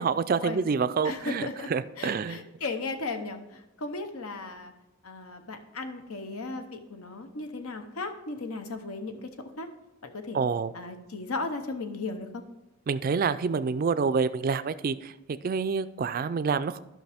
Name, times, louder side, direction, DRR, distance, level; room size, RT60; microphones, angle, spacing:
voice 1, 0.0-2.4 10.3-10.7 12.9-15.1 15.4-16.8, right 5 dB, 40° right, 13 dB, 0.3 m, -27 dB
voice 2, 1.0-1.7 2.0-4.7 5.0-9.3 9.6-9.7 10.0-10.4 10.7-12.4, left 3 dB, 85° left, 7 dB, 0.9 m, -36 dB
13.0 x 5.8 x 3.5 m, 0.96 s
head